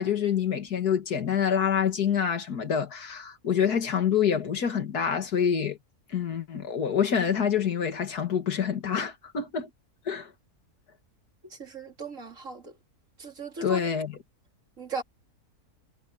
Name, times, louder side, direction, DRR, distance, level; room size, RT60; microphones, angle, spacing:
voice 1, 0.0-5.8 6.1-9.7 10.1-10.3 13.6-14.2, left 8 dB, 85° left, 2.4 m, -26 dB
voice 2, 11.6-12.7 13.2-13.8 14.8-15.0, right 3 dB, 55° right, 3.5 m, -37 dB
omnidirectional pair, 1.6 m